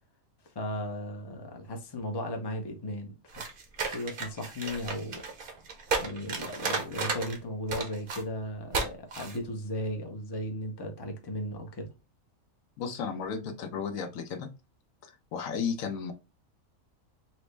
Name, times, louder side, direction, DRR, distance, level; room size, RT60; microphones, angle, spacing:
voice 1, 0.5-3.4 3.9-5.3 6.0-11.9, left 1 dB, 35° left, 0.4 m, -36 dB
sound 1, 3.3-7.4 7.7-8.2 8.7-8.9 9.1-9.4, right 4 dB, 50° right, 0.7 m, -33 dB
voice 2, 12.8-14.5 15.0-16.1, left 6 dB, 80° left, 1.1 m, -34 dB
4.2 x 2.0 x 3.2 m
omnidirectional pair, 1.4 m